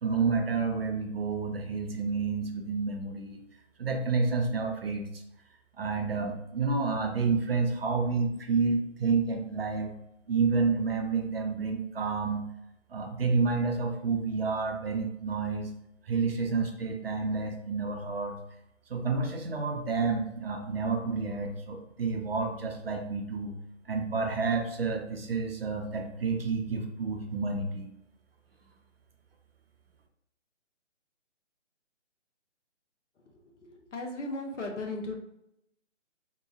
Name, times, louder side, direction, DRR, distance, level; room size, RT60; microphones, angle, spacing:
voice 1, 0.0-3.4 3.8-5.2 5.8-9.9 10.3-12.4 12.9-15.7 16.0-18.4 18.9-23.5 23.9-27.9, right 4 dB, 55° right, 2 dB, 0.6 m, -29 dB
voice 2, 33.6-35.2, left 2 dB, 75° left, 3 dB, 0.9 m, -36 dB
3.7 x 2.9 x 2.5 m, 0.82 s
hypercardioid pair, 160°, 36 cm